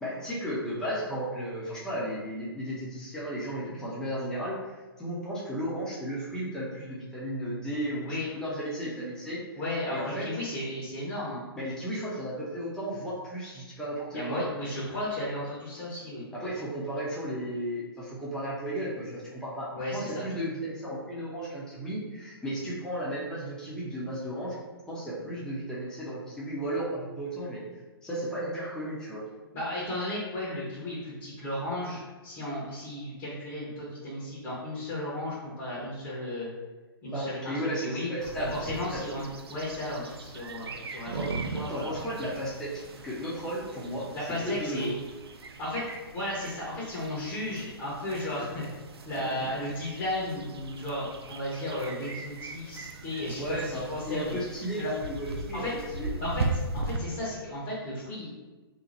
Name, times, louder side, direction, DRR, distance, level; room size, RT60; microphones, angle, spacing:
voice 1, 0.0-9.4 9.9-10.3 11.6-14.5 16.3-24.6 24.9-27.6 28.0-29.2 37.1-38.6 38.9-39.0 41.1-41.3 41.7-44.1 44.4-44.9 49.2-49.5 53.4-56.1, equal, 5° left, -8 dB, 0.8 m, -34 dB
voice 2, 9.5-11.4 14.1-16.2 19.7-20.2 29.5-36.5 37.0-38.1 38.4-42.0 44.1-44.9 45.6-45.8 46.1-48.7 49.1-54.3 54.8-54.9 55.5-55.7 56.2-56.4 56.7-58.3, left 1 dB, 30° left, -9 dB, 1.2 m, -34 dB
sound 1, 38.2-57.0, right 3 dB, 80° right, 0.5 m, -39 dB
2.9 x 2.4 x 4.0 m, 1.2 s
hypercardioid pair, 125°, 13 cm